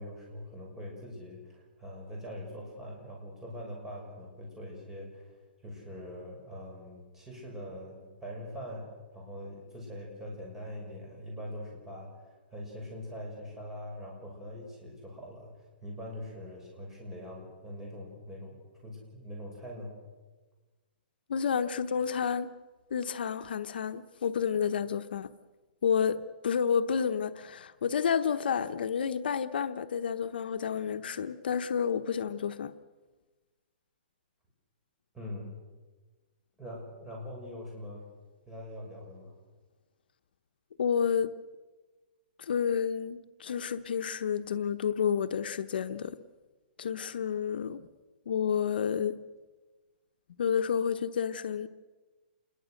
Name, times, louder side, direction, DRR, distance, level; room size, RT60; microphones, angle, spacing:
voice 1, 0.0-5.3 5.6-20.0 35.1-35.5 36.6-38.0 38.5-39.3, left 1 dB, 5° right, 6.5 m, -43 dB
voice 2, 21.3-22.5 22.9-25.3 25.8-32.7 40.8-41.3 42.4-46.2 46.8-47.8 48.3-49.2 50.4-51.7, left 7 dB, 70° left, 1.0 m, -30 dB
28.0 x 21.5 x 6.6 m
hypercardioid pair, 165°, 5 cm